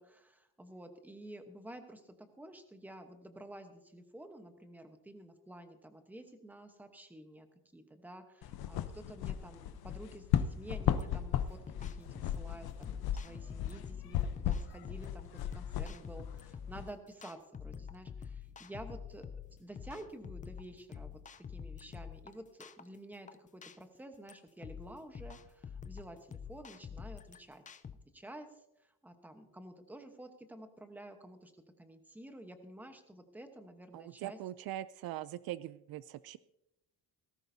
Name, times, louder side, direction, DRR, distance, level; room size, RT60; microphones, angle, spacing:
voice 1, 0.0-7.5 7.7-11.6 12.0-19.3 19.6-27.8 28.1-31.5 31.8-34.4, right 1 dB, 5° right, 6 dB, 1.0 m, -51 dB
sound 1, 8.4-16.9, left 10 dB, 75° left, 0.8 m, -36 dB
sound 2, 10.7-28.0, left 7 dB, 20° left, 0.3 m, -47 dB
voice 2, 33.9-36.4, right 13 dB, 70° right, 16 dB, 0.5 m, -42 dB
18.0 x 15.0 x 2.7 m, 0.88 s
cardioid pair, 165°, 38 cm